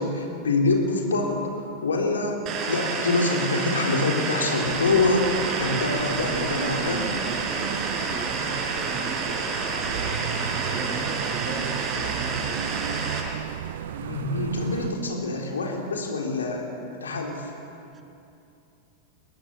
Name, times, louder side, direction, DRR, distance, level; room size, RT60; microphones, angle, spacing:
voice 1, 0.0-5.3 5.6-7.1 14.0-16.7 17.0-17.5, left 3 dB, 70° left, 1 dB, 3.7 m, -25 dB
sound 1, 2.5-13.2, right 4 dB, 35° right, 5.6 m, -29 dB
sound 2, 4.6-14.9, right 10 dB, 60° right, 0.7 m, -35 dB
voice 2, 5.7-6.5 7.0-9.7 10.3-12.9 17.9-18.0, right 3 dB, 15° right, 4 dB, 2.3 m, -39 dB
23.0 x 20.0 x 8.3 m, 2.7 s
figure-of-eight pair, 90°, 0 cm